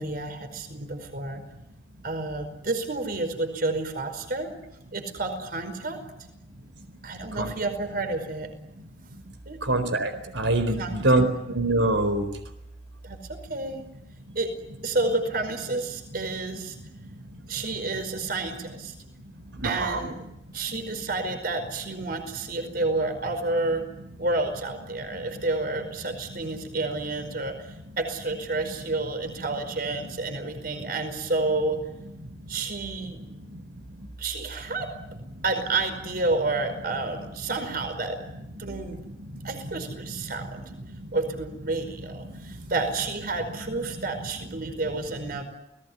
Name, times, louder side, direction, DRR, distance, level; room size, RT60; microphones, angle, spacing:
voice 1, 0.0-1.4 2.0-4.5 4.9-6.0 7.0-8.5 9.4-9.6 10.7-11.0 13.0-13.9 14.3-14.5 14.8-16.7 17.5-18.9 19.6-20.2 20.5-23.8 24.2-31.8 32.5-33.2 34.2-34.9 35.4-38.2 38.6-39.0 39.4-40.6 41.1-45.4, right 2 dB, 50° right, 8 dB, 5.0 m, -30 dB
voice 2, 9.7-10.1 10.4-11.3 11.5-12.2 19.6-20.0, right 2 dB, 85° right, 8 dB, 4.3 m, -23 dB
29.5 x 19.5 x 9.8 m, 0.88 s
head